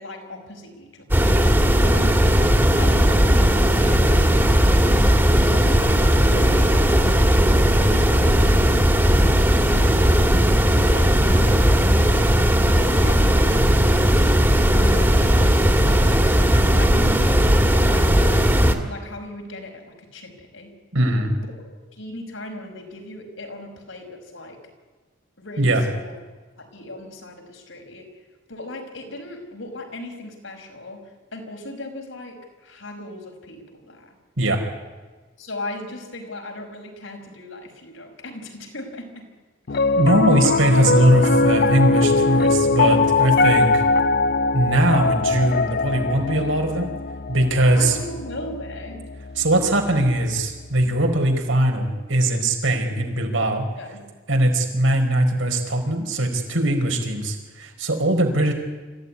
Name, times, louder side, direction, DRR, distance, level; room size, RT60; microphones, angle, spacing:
voice 1, 0.0-5.0 5.4-10.2 10.8-11.9 12.8-14.2 14.7-16.2 16.5-20.7 21.9-24.6 25.4-26.1 26.6-28.1 28.5-31.0 31.3-34.1 35.4-39.3 39.7-40.0 47.7-49.0 53.8-54.1, left 1 dB, 85° left, 3 dB, 5.3 m, -37 dB
sound 1, 1.1-18.8, equal, 10° right, 2.0 m, -17 dB
voice 2, 20.9-21.4 25.6-25.8 34.4-34.6 39.9-43.8 44.5-46.9 47.3-48.0 49.4-53.7 54.3-58.5, right 1 dB, 85° right, 4 dB, 4.5 m, -20 dB
Piano, 39.7-50.0, left 3 dB, 55° left, 0.6 m, -21 dB
25.5 x 15.5 x 9.7 m, 1.3 s
head